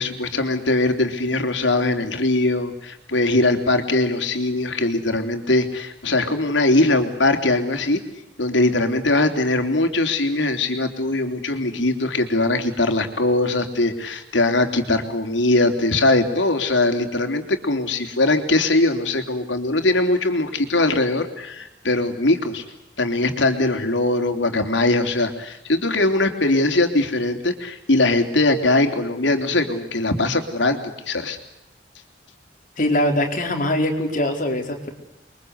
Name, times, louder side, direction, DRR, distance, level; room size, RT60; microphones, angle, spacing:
voice 1, 0.0-8.0 8.4-22.6 23.0-30.8 31.0-31.4, left 2 dB, 85° left, 6 dB, 3.5 m, -21 dB
voice 2, 32.8-34.9, left 1 dB, 45° left, 4 dB, 4.7 m, -22 dB
30.0 x 23.5 x 8.2 m, 0.91 s
head